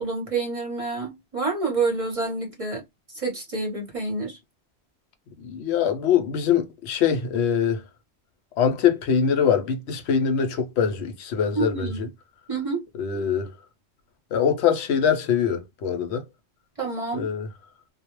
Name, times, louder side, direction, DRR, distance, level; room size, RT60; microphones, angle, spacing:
voice 1, 0.0-2.8 3.1-4.4 11.5-12.0 12.5-12.8 16.8-17.3, right 3 dB, 35° right, 0.7 m, -28 dB
voice 2, 5.4-7.8 8.6-12.1 13.0-13.5 14.3-16.2 17.1-17.5, left 7 dB, 75° left, 0.8 m, -23 dB
2.2 x 2.0 x 2.9 m
omnidirectional pair, 1.1 m